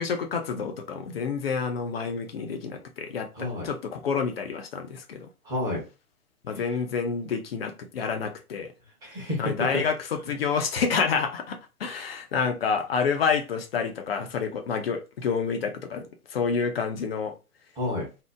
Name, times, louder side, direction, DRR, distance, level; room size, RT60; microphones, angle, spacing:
voice 1, 0.0-5.3 6.4-8.7 9.4-16.0 16.3-17.3, left 5 dB, 40° left, 0.7 m, -28 dB
voice 2, 3.3-3.7 5.4-5.8 6.5-6.6 9.0-9.8 10.2-10.3 17.8-18.1, left 2 dB, 10° right, 0.9 m, -30 dB
2.8 x 2.1 x 3.5 m
figure-of-eight pair, 135°, 44 cm